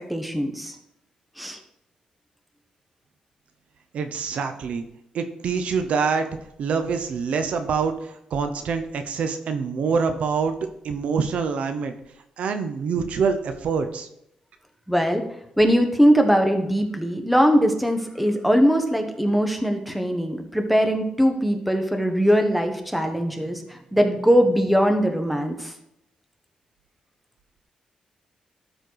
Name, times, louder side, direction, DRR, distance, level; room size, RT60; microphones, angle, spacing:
voice 1, 0.1-0.7 1.4-1.6 14.9-15.2 15.6-25.7, equal, ahead, 5 dB, 1.4 m, -21 dB
voice 2, 3.9-4.8 5.1-6.3 6.6-10.6 10.8-11.9 12.4-14.1, right 5 dB, 70° right, 8 dB, 0.9 m, -25 dB
12.5 x 4.5 x 4.8 m, 0.78 s
cardioid pair, 95°, 2 cm